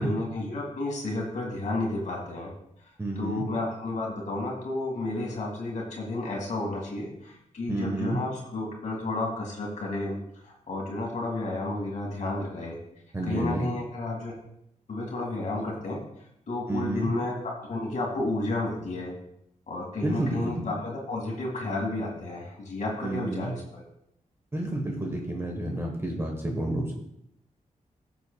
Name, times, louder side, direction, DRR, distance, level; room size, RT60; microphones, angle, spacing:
voice 1, 0.0-2.5 3.2-10.2 10.4-12.8 13.2-14.3 14.9-16.0 16.5-19.1 19.7-23.8, left 2 dB, 65° left, -1 dB, 2.1 m, -32 dB
voice 2, 3.0-3.5 7.7-8.2 13.1-13.7 16.7-17.1 20.0-20.5 23.0-23.5 24.5-26.9, right 1 dB, 20° right, 1 dB, 1.2 m, -30 dB
16.0 x 7.1 x 2.3 m, 0.75 s
wide cardioid pair, 155°, 14 cm